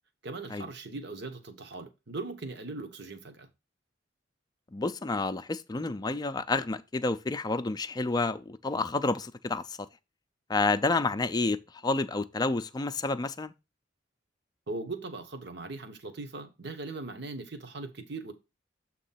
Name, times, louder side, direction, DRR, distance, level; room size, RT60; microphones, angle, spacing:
voice 1, 0.2-3.5 14.7-18.3, right 3 dB, 60° right, 1.1 m, -39 dB
voice 2, 4.7-9.8 10.5-11.6 11.8-13.5, left 3 dB, 20° left, 0.4 m, -29 dB
7.5 x 3.0 x 5.6 m
head